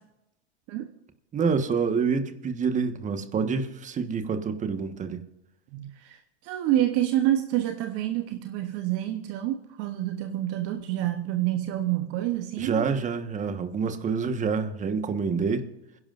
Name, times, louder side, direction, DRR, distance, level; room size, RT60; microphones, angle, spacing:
voice 1, 1.3-5.2 12.6-15.7, right 5 dB, 20° right, 1.4 m, -27 dB
voice 2, 5.7-13.0, right 13 dB, 45° right, 1.0 m, -28 dB
26.0 x 11.0 x 2.6 m
hypercardioid pair, 120°, 33 cm